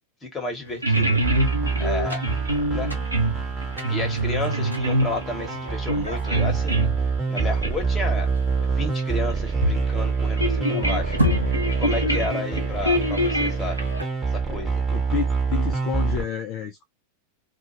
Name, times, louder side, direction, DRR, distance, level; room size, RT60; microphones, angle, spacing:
voice 1, 0.2-1.2 1.8-2.2 2.7-2.9 3.9-6.9 7.3-8.3 8.6-11.2 11.8-13.8 14.3-14.8, left 2 dB, 15° left, 1.2 m, -32 dB
sound 1, 0.7-7.1 7.4-7.8 8.8-8.9 9.2-9.3 9.6-9.8 10.2-14.0, right 1 dB, 85° right, 0.6 m, -25 dB
sound 2, 1.2-16.2, right 5 dB, 10° right, 1.0 m, -26 dB
voice 2, 10.7-11.2 11.8-12.3 14.5-14.6 14.9-16.8, left 9 dB, 40° left, 0.4 m, -31 dB
2.2 x 2.2 x 3.0 m
figure-of-eight pair, 90°, 0 cm